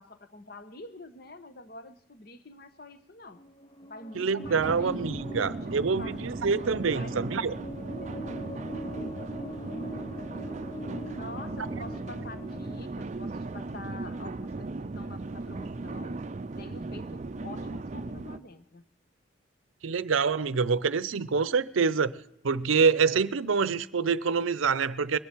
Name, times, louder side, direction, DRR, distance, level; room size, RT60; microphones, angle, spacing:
voice 1, 0.0-3.4 3.8-4.9 5.3-5.7 6.0-6.2 6.9-7.3 11.1-16.2 16.6-18.9, left 2 dB, 50° left, 1.0 m, -46 dB
sound 1, 3.4-12.8, equal, 25° left, 0.6 m, -42 dB
voice 2, 4.1-7.5 19.8-22.1 22.4-25.2, right 5 dB, 85° right, 0.6 m, -26 dB
sound 2, 4.4-18.4, right 3 dB, 35° right, 0.4 m, -37 dB
21.5 x 10.5 x 4.5 m
head